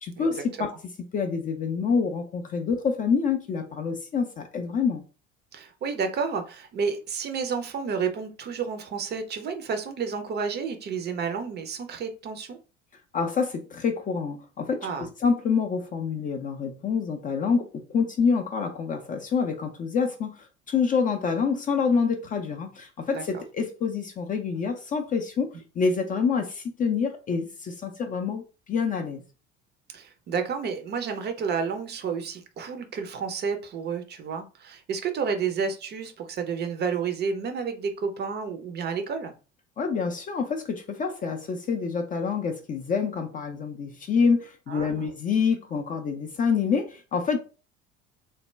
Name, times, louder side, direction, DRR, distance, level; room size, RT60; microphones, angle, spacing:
voice 1, 0.0-0.7 1.1-5.0 13.1-20.3 20.7-25.5 25.8-28.4 28.7-29.2 39.8-47.4, left 5 dB, 25° left, 0.5 m, -27 dB
voice 2, 5.5-12.6 14.8-15.1 23.1-23.4 29.9-39.3 44.7-45.1, right 6 dB, 30° right, 0.6 m, -31 dB
3.2 x 2.1 x 3.2 m
figure-of-eight pair, 65°, 36 cm